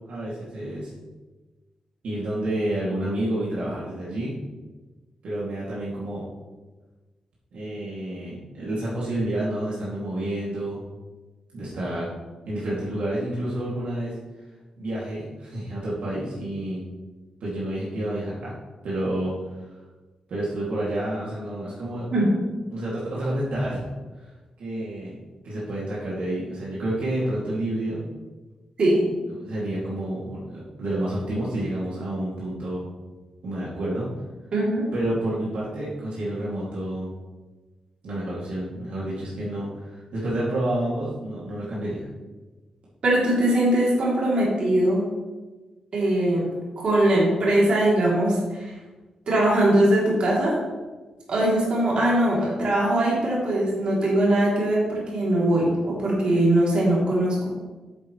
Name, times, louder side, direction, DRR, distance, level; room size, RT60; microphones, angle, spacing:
voice 1, 0.1-0.9 2.0-4.3 5.2-6.2 7.5-10.8 11.5-12.1 12.4-14.2 14.8-16.8 17.4-18.5 18.8-19.3 20.3-22.1 22.7-23.8 24.2-24.3 24.6-25.2 25.4-28.0 29.3-32.9 33.4-34.0 34.9-37.1 38.0-42.1, right 1 dB, 80° right, -7 dB, 2.4 m, -29 dB
voice 2, 28.8-29.1 34.5-34.9 43.0-45.1 45.9-48.6 49.3-50.6 51.3-57.5, right 1 dB, 55° right, -5 dB, 3.0 m, -21 dB
9.4 x 8.2 x 3.2 m, 1.2 s
wide cardioid pair, 150°, 2 cm